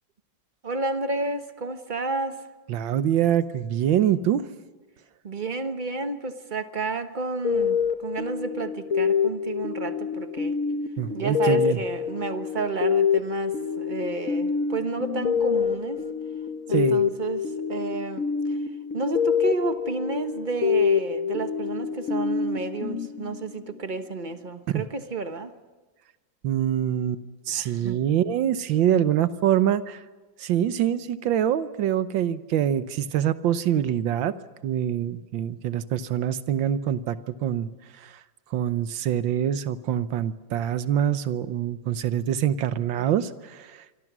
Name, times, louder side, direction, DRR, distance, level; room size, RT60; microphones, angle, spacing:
voice 1, 0.6-2.4 5.2-10.6 11.1-16.0 16.7-25.5 27.5-28.0, right 3 dB, 30° right, 8 dB, 1.1 m, -31 dB
voice 2, 2.7-4.4 11.0-11.8 16.7-17.0 24.7-24.8 26.4-30.0 30.4-34.3 34.6-37.2 37.4-37.7 38.0-38.1 38.5-43.7, right 10 dB, 85° right, 13 dB, 1.7 m, -25 dB
sound 1, 7.4-23.8, left 6 dB, 50° left, 1.3 m, -26 dB
26.0 x 24.5 x 6.2 m, 1.2 s
omnidirectional pair, 2.0 m